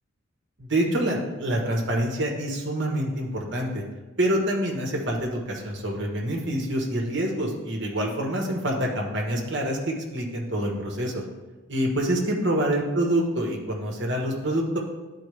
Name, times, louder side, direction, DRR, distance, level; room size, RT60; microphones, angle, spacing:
voice 1, 0.6-3.8 4.2-11.2 11.7-14.8, right 1 dB, 55° right, 0 dB, 1.3 m, -26 dB
11.5 x 4.4 x 3.3 m, 1.2 s
head